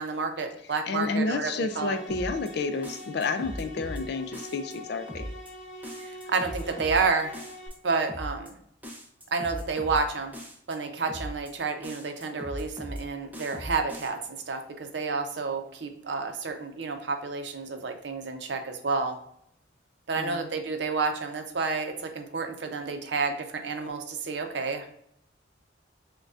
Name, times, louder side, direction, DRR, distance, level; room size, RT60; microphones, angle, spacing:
voice 1, 0.0-2.0 6.0-7.3 7.8-8.5 9.3-10.3 10.7-14.2 14.5-19.2 20.1-25.0, right 4 dB, 65° right, 5 dB, 0.6 m, -30 dB
voice 2, 0.9-5.2 20.2-20.5, left 3 dB, 60° left, 9 dB, 0.4 m, -30 dB
sound 1, 1.6-7.7, equal, 85° left, 0.7 m, -44 dB
sound 2, 2.1-2.5 2.8-4.0 4.3-4.8 5.1-5.5 5.8-7.0 7.3-7.8 8.1-8.5 8.8-10.0 10.3-10.8 11.1-11.5 11.8-13.0 13.3-14.1, equal, 10° right, 0.7 m, -39 dB
6.3 x 2.3 x 2.4 m, 0.70 s
head